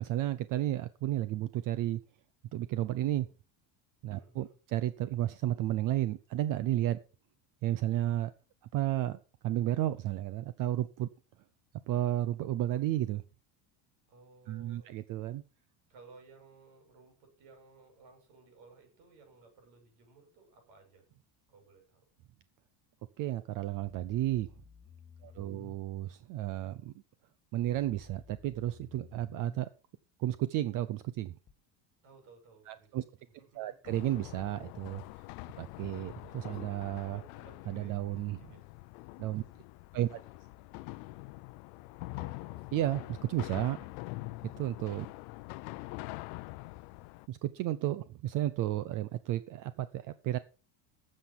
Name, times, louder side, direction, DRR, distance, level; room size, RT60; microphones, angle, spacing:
voice 1, 0.0-2.0 2.5-3.3 4.0-7.0 7.6-8.3 8.7-11.1 11.9-13.2 14.5-15.4 23.2-24.5 25.2-26.9 27.5-29.7 30.2-31.4 32.7-33.0 33.6-35.0 35.6-37.2 37.7-38.4 39.2-39.4 39.9-40.2 42.7-43.0 43.3-43.8 44.6-45.1 47.3-50.4, right 14 dB, 45° right, 15 dB, 0.6 m, -32 dB
voice 2, 4.1-4.6 14.1-14.9 15.9-21.1 21.5-22.1 25.2-25.7 32.0-33.8 35.5-38.6 42.1-43.6, right 4 dB, 60° right, 4 dB, 6.6 m, -59 dB
sound 1, 23.8-25.8 27.6-29.6 31.5-31.6, left 6 dB, 20° left, 0.7 m, -54 dB
sound 2, 33.8-47.3, left 21 dB, 70° left, 0.7 m, -45 dB
13.0 x 7.6 x 5.9 m, 0.36 s
cardioid pair, 165°, 48 cm